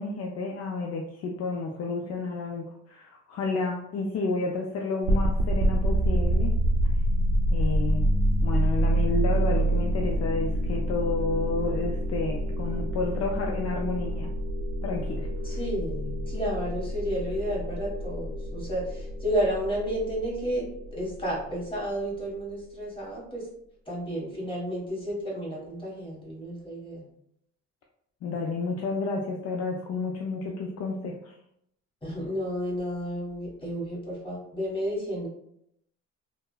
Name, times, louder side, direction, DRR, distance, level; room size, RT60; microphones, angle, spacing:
voice 1, 0.0-6.5 7.5-8.1 8.4-14.3 14.8-15.6 16.3-16.4 28.2-31.3, left 3 dB, 55° left, 0 dB, 0.4 m, -31 dB
sound 1, 5.0-22.0, right 1 dB, 65° right, 0.5 m, -27 dB
voice 2, 15.4-20.6 20.9-23.5 23.9-27.1 32.0-35.3, equal, 15° left, -5 dB, 1.4 m, -31 dB
3.1 x 2.0 x 2.2 m, 0.74 s
cardioid pair, 90°, 30 cm